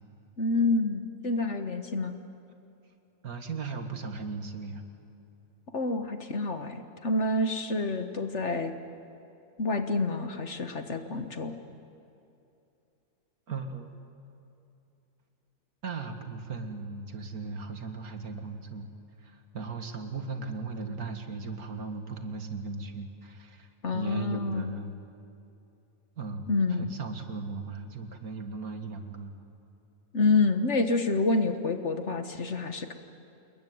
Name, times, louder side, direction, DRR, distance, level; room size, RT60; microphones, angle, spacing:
voice 1, 0.4-2.1 5.7-8.7 9.6-11.5 23.8-24.7 26.5-26.9 30.1-32.9, left 3 dB, 50° left, 8 dB, 1.6 m, -28 dB
voice 2, 3.2-4.8 13.5-13.9 15.8-18.9 19.2-25.0 26.2-29.3, right 4 dB, 65° right, 7 dB, 2.3 m, -37 dB
28.5 x 21.0 x 9.5 m, 2.7 s
omnidirectional pair, 1.7 m